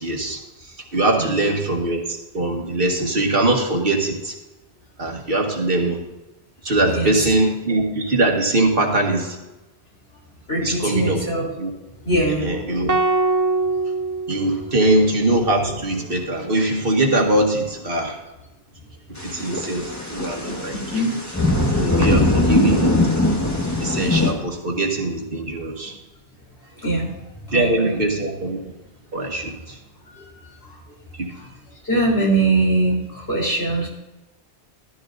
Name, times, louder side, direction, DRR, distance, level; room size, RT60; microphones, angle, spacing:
voice 1, 0.0-4.3 5.0-6.0 6.6-9.4 10.6-11.3 11.6-11.7 12.3-13.0 14.3-18.2 19.1-21.0 21.8-22.9 23.8-26.0 27.5-28.6 29.1-29.8 31.1-31.3, right 2 dB, 55° right, 1 dB, 2.1 m, -22 dB
voice 2, 1.2-1.6 6.9-7.1 10.5-11.5 12.0-12.5 20.7-21.1 21.9-22.7 26.8-27.1 27.5-28.0 30.1-30.7 31.4-31.5 31.8-33.9, right 2 dB, 65° left, -3 dB, 4.1 m, -22 dB
sound 1, 12.9-15.2, right 3 dB, 30° right, 0.3 m, -23 dB
sound 2, 19.2-24.3, left 2 dB, 15° left, 1.5 m, -21 dB
15.5 x 12.5 x 2.6 m, 1.0 s
omnidirectional pair, 1.1 m